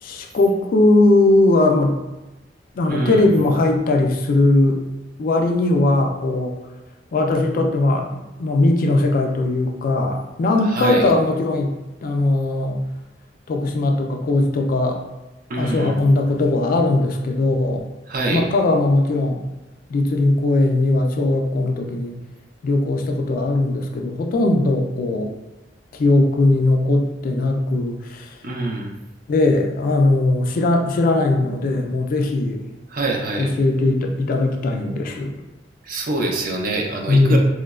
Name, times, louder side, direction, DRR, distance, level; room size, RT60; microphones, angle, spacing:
voice 1, 0.0-2.0 2.7-4.8 5.2-6.6 7.1-11.8 12.0-12.8 13.5-15.0 15.6-17.8 18.3-19.4 19.9-22.2 22.6-25.3 25.9-28.4 29.3-32.6 33.4-35.3 37.1-37.4, left 2 dB, 50° left, 4 dB, 0.3 m, -19 dB
voice 2, 2.9-3.3 10.7-11.1 15.5-15.9 18.1-18.4 28.4-28.9 32.9-33.5 35.8-37.4, right 2 dB, 50° right, 1 dB, 0.4 m, -24 dB
3.0 x 2.1 x 2.3 m, 1.0 s
head